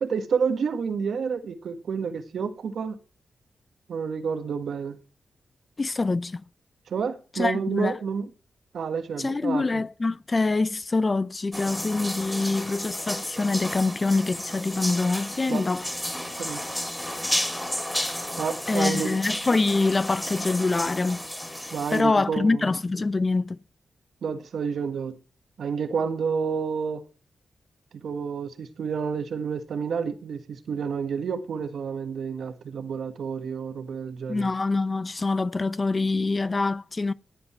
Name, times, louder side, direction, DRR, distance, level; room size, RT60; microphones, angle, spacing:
voice 1, 0.0-3.0 3.9-5.0 6.9-8.3 8.7-9.8 15.5-15.7 16.4-16.6 18.4-19.2 21.7-22.7 24.2-25.2 25.6-27.1 27.9-34.5, right 6 dB, 80° right, 1.7 m, -29 dB
voice 2, 5.8-6.4 7.4-7.9 9.2-15.9 18.7-21.3 21.9-23.6 34.3-37.1, left 3 dB, 30° left, 0.6 m, -25 dB
sound 1, 11.5-22.0, equal, 5° left, 2.9 m, -32 dB
16.5 x 8.2 x 4.5 m
wide cardioid pair, 100°, 0 cm